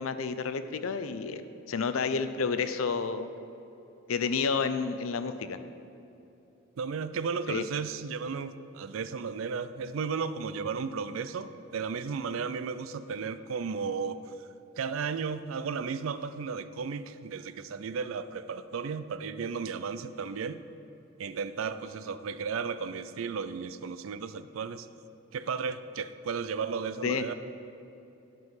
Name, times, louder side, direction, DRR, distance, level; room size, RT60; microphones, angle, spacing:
voice 1, 0.0-3.3 4.1-5.6 7.5-7.6 27.0-27.2, left 5 dB, 85° left, 11 dB, 0.5 m, -30 dB
voice 2, 6.8-14.5 14.8-20.6 21.2-24.9 25.3-27.3, right 5 dB, 80° right, 13 dB, 0.4 m, -34 dB
10.5 x 5.5 x 5.6 m, 2.9 s
head